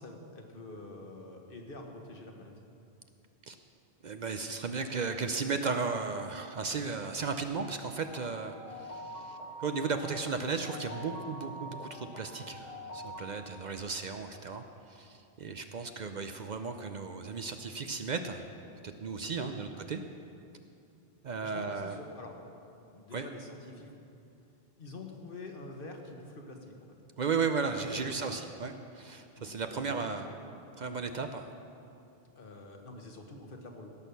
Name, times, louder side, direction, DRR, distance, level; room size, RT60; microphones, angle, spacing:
voice 1, 0.0-2.5 13.8-13.9 19.4-19.5 21.4-23.9 24.8-27.0 27.9-28.4 29.4-30.3 32.3-33.9, left 2 dB, 60° left, 2 dB, 1.5 m, -47 dB
voice 2, 4.0-18.5 18.8-20.0 21.2-22.0 23.1-23.3 27.2-30.3 30.8-31.5, right 5 dB, 50° right, 7 dB, 0.6 m, -35 dB
sound 1, 8.0-13.2, equal, 85° left, 2.0 m, -45 dB
17.0 x 6.4 x 6.8 m, 2.6 s
omnidirectional pair, 1.0 m